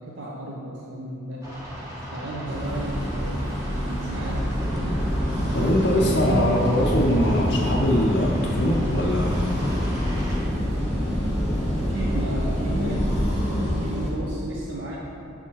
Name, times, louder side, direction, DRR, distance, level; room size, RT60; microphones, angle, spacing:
voice 1, 0.0-1.4 2.1-4.6 5.9-6.4 11.7-13.3 13.6-15.0, right 1 dB, 60° right, -4 dB, 0.6 m, -33 dB
sound 1, 1.4-10.4, right 1 dB, 15° right, 1.1 m, -37 dB
sound 2, 2.4-14.1, equal, 30° right, 1.3 m, -28 dB
sound 3, 4.6-13.5, equal, ahead, 0.7 m, -29 dB
voice 2, 5.5-9.5, equal, 55° left, -3 dB, 0.5 m, -22 dB
7.2 x 3.6 x 4.2 m, 2.6 s
head